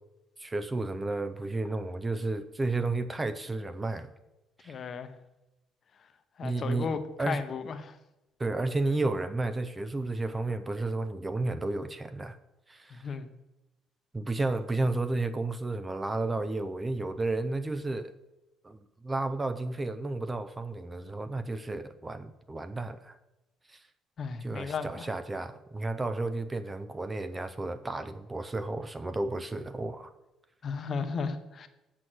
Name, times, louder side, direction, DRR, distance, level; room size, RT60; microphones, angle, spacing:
voice 1, 0.4-4.1 4.6-4.8 6.4-7.4 8.4-12.4 12.7-13.1 14.1-18.1 18.6-18.8 19.0-23.2 23.7-23.8 24.4-30.1, right 2 dB, 15° right, 0.4 m, -32 dB
voice 2, 4.7-5.2 6.4-7.9 12.9-13.3 24.2-25.1 30.6-31.7, left 5 dB, 35° left, 0.8 m, -35 dB
7.8 x 6.1 x 7.6 m
cardioid pair, 165°, 0 cm